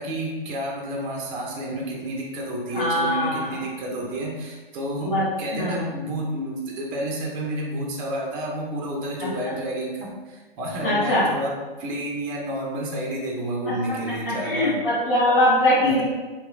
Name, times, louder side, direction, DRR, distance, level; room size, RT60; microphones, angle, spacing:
voice 1, 0.0-11.5 11.8-14.8 15.8-16.0, right 1 dB, 25° right, -2 dB, 0.5 m, -30 dB
voice 2, 2.7-3.5 5.0-5.3 5.5-5.9 9.4-9.5 10.8-11.2 14.2-16.0, left 1 dB, 60° left, -9 dB, 1.4 m, -22 dB
2.9 x 2.6 x 2.4 m, 1.2 s
figure-of-eight pair, 120°, 29 cm